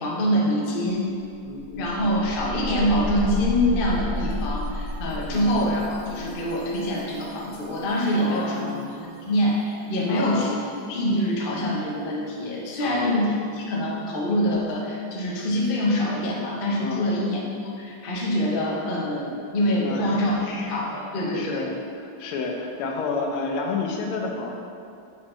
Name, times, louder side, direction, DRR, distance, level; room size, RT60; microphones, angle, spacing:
voice 1, 0.0-1.1 1.8-8.6 9.0-10.6 10.9-21.6, equal, 65° left, -4 dB, 0.5 m, -25 dB
sound 1, 0.9-1.0 1.3-8.1, left 1 dB, 80° right, 0.8 m, -33 dB
voice 2, 1.5-2.0 5.3-5.6 8.2-8.8 10.1-10.6 12.8-13.2 16.8-17.1 19.8-20.2 21.2-21.7 22.0-24.5, left 4 dB, 90° left, 1 dB, 1.6 m, -30 dB
5.0 x 4.5 x 4.3 m, 2.5 s
omnidirectional pair, 2.3 m